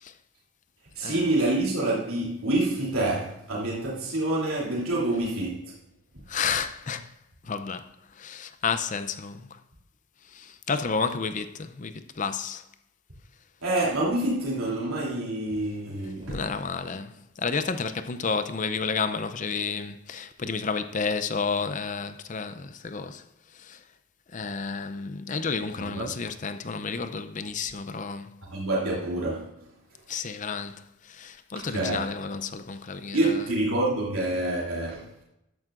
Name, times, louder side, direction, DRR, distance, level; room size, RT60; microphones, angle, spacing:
voice 1, 0.9-5.7 6.1-6.5 13.6-16.5 25.8-26.1 28.5-29.5 31.5-32.1 33.1-35.1, right 2 dB, 85° right, 3.0 m, -27 dB
voice 2, 6.3-7.1 7.4-9.5 10.3-12.6 16.3-23.2 23.5-23.8 24.3-28.4 30.1-33.4, left 5 dB, 35° left, 0.5 m, -31 dB
13.5 x 11.0 x 2.6 m
head